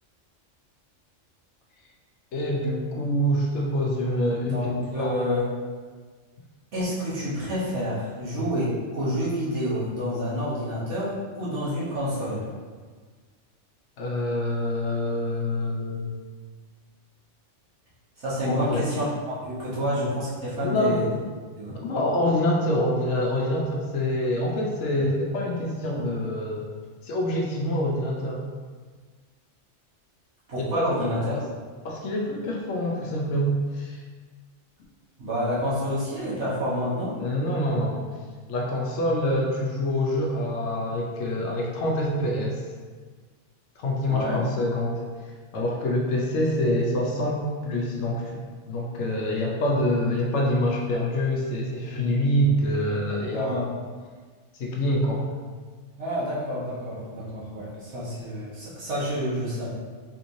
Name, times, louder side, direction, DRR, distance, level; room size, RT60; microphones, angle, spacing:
voice 1, 2.3-4.6 5.0-5.1 14.0-16.1 18.4-18.8 20.6-21.0 21.7-26.7 27.0-28.4 30.6-30.9 31.3-31.4 31.8-34.0 37.2-38.1 38.5-42.7 43.8-45.0 45.5-53.6 54.6-55.2, left 1 dB, 70° left, -1 dB, 0.9 m, -26 dB
voice 2, 4.4-5.5 6.7-12.5 18.2-21.1 21.6-21.8 30.5-31.4 35.2-37.2 44.1-44.5 53.3-53.7 56.0-59.7, equal, 65° right, -9 dB, 1.4 m, -28 dB
3.4 x 3.0 x 2.6 m, 1.5 s
omnidirectional pair, 1.3 m